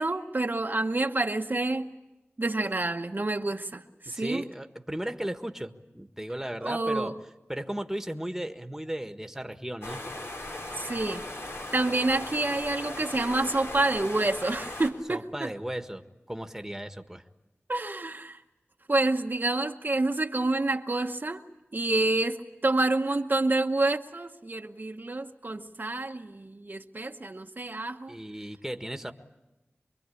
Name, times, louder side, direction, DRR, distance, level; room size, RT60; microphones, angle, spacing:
voice 1, 0.0-1.9 2.4-4.4 6.6-7.1 10.7-11.2 11.7-15.5 17.7-18.4 18.9-21.4 21.7-28.1, right 2 dB, 45° right, 5 dB, 1.0 m, -28 dB
voice 2, 4.0-7.1 7.5-10.0 15.1-17.2 28.1-29.1, right 1 dB, 10° right, 7 dB, 1.6 m, -36 dB
sound 1, 9.8-14.9, left 1 dB, 70° left, 4.3 m, -38 dB
25.5 x 23.0 x 8.5 m, 1.0 s
wide cardioid pair, 55°, 4 cm